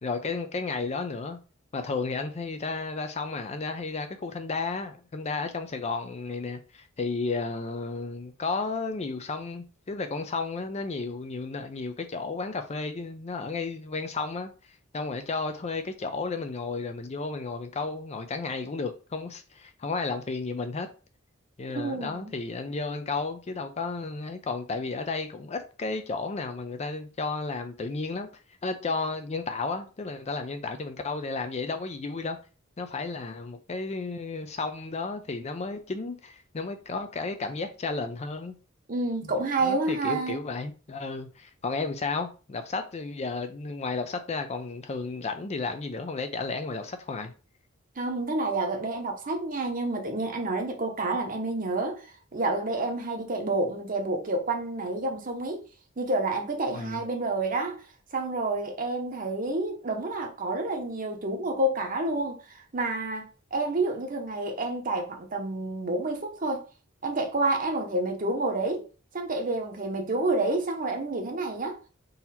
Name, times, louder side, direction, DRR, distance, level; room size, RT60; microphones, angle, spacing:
voice 1, 0.0-1.4 1.7-14.5 14.9-20.9 21.6-28.3 28.6-32.4 32.8-38.5 39.2-39.3 39.6-47.3 56.7-57.0, left 3 dB, 30° left, 0.5 m, -33 dB
voice 2, 21.7-22.3 38.9-40.4 48.0-52.0 52.3-55.6 56.0-57.8 58.1-66.6 67.0-68.9 69.1-71.8, right 2 dB, 40° right, 0.9 m, -29 dB
3.9 x 2.8 x 4.2 m
head